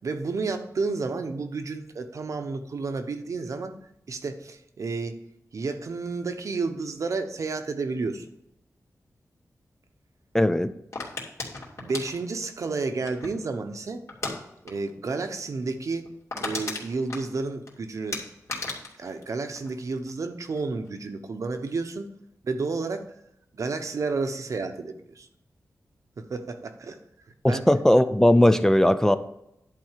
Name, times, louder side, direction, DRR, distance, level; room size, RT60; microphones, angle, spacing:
voice 1, 0.0-3.7 4.1-5.2 5.5-8.3 11.8-14.0 14.6-16.1 16.4-18.2 19.0-22.1 22.4-23.1 23.5-25.3 26.2-27.0 27.5-27.6, right 4 dB, 65° right, 7 dB, 0.9 m, -31 dB
voice 2, 10.3-10.7 27.4-29.2, left 1 dB, 10° left, 10 dB, 0.4 m, -18 dB
sound 1, 10.9-13.5 14.1-14.4 14.7-14.9 15.2-15.3 15.7-15.8 16.0-17.7 18.1-20.1 20.4-20.9, left 3 dB, 55° left, 2.4 m, -35 dB
11.0 x 4.2 x 7.4 m, 0.81 s
wide cardioid pair, 120°, 6 cm